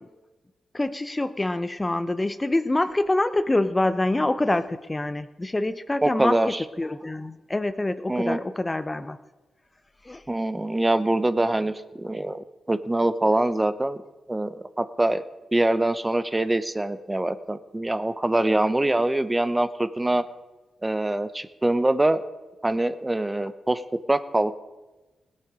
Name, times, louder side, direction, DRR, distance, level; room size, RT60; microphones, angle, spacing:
voice 1, 0.7-9.2 10.0-10.2, left 2 dB, 25° left, 11 dB, 0.7 m, -26 dB
voice 2, 6.0-6.6 8.1-8.4 10.3-14.0 14.3-15.2 15.5-20.2 20.8-22.2 22.6-23.8 24.1-24.5, right 1 dB, 20° right, 12 dB, 0.8 m, -24 dB
17.5 x 8.5 x 5.0 m, 1.1 s
supercardioid pair, 50°, 0 cm